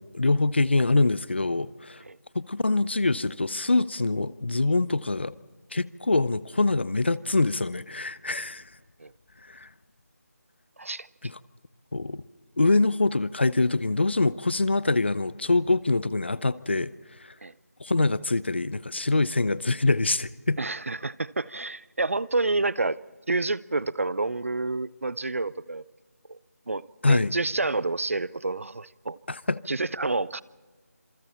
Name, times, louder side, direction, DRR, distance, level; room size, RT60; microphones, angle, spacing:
voice 1, 0.0-2.0 2.3-5.3 5.7-8.6 9.5-9.7 11.2-11.4 11.9-12.2 12.6-16.9 17.2-17.3 17.8-20.6 27.0-27.3 29.3-29.6, left 3 dB, 40° left, 0.6 m, -24 dB
voice 2, 10.8-11.3 17.4-17.5 20.6-23.0 23.3-25.8 26.3-26.4 26.7-29.2 29.7-30.4, right 3 dB, 55° right, 0.6 m, -29 dB
27.5 x 27.0 x 4.4 m
figure-of-eight pair, 175°, 9 cm